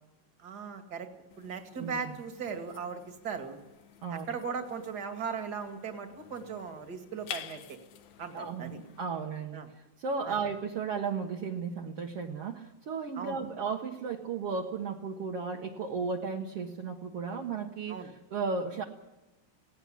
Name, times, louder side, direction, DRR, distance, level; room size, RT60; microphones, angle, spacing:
voice 1, 0.4-1.1 1.4-3.6 4.1-7.8 8.2-8.8 9.5-9.7 10.3-10.4 13.2-13.4 17.9-18.1, right 6 dB, 30° right, 6 dB, 2.1 m, -38 dB
sound 1, 1.3-9.1, left 10 dB, 75° left, 1.7 m, -49 dB
voice 2, 1.7-2.1 4.0-4.3 8.3-18.8, right 5 dB, 60° right, 0 dB, 1.7 m, -35 dB
19.0 x 17.0 x 10.0 m, 0.99 s
omnidirectional pair, 4.6 m